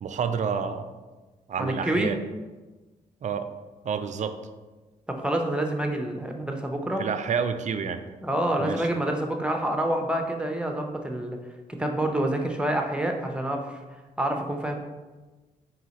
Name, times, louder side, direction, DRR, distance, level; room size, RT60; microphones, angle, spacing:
voice 1, 0.0-0.8 1.5-2.2 3.2-3.5 3.8-4.4 7.0-8.0 8.6-8.9, right 6 dB, 45° right, 9 dB, 0.4 m, -29 dB
voice 2, 1.6-2.1 5.1-7.0 8.2-11.4 11.8-13.8 14.2-14.8, right 1 dB, 5° right, 3 dB, 0.7 m, -27 dB
3.9 x 2.8 x 4.0 m, 1.2 s
supercardioid pair, 50°, 17 cm